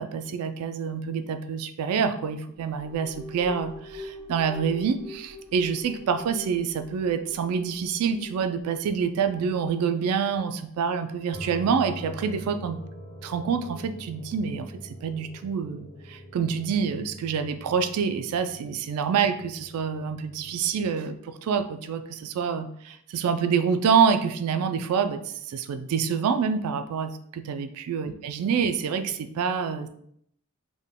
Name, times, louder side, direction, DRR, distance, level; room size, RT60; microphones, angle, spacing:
voice 1, 0.0-12.8 13.2-29.9, right 6 dB, 85° right, 9 dB, 0.3 m, -27 dB
sound 1, 2.6-10.1, left 2 dB, 25° right, 1.4 m, -44 dB
sound 2, 11.3-20.8, equal, 55° left, 1.1 m, -44 dB
3.7 x 2.1 x 3.5 m, 0.70 s
head